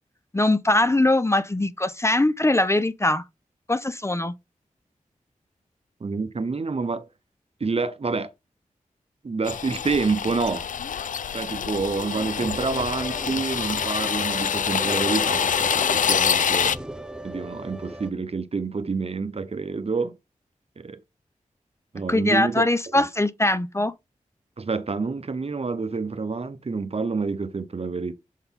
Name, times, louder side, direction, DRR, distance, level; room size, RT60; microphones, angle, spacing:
voice 1, 0.3-3.2 3.7-4.3 22.1-23.9, left 2 dB, 20° left, 0.6 m, -21 dB
voice 2, 6.0-7.1 7.6-8.3 9.2-10.7 11.3-16.7 17.2-20.1 20.8-21.0 21.9-22.6 22.9-23.1 24.6-28.1, right 4 dB, 45° right, 0.8 m, -28 dB
sound 1, 9.4-16.7, left 7 dB, 70° left, 0.4 m, -26 dB
sound 2, 12.3-18.1, right 1 dB, 5° right, 0.9 m, -37 dB
7.2 x 3.9 x 3.7 m
cardioid pair, 45°, 14 cm